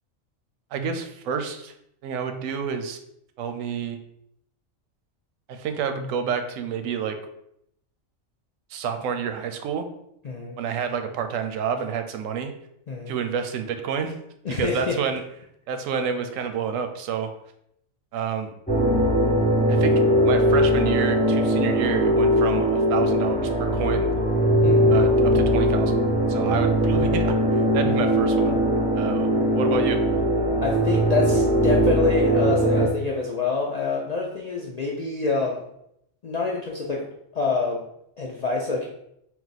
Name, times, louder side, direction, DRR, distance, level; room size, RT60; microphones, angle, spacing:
voice 1, 0.7-1.7 2.0-3.0 3.4-4.0 5.5-7.2 8.7-9.9 10.6-12.5 13.1-14.2 14.5-15.2 15.7-17.3 18.1-18.5 19.7-24.1 24.9-26.0 26.3-28.5 28.9-30.0, right 7 dB, 90° right, 7 dB, 1.0 m, -29 dB
voice 2, 10.2-10.6 12.9-13.2 14.4-15.0 24.6-25.0 27.8-28.1 30.6-35.6 36.2-37.1 37.3-37.8 38.2-38.9, left 4 dB, 60° left, -2 dB, 0.4 m, -27 dB
sound 1, 18.7-32.9, equal, 10° left, 0.9 m, -20 dB
4.0 x 2.4 x 4.0 m, 0.75 s
omnidirectional pair, 1.3 m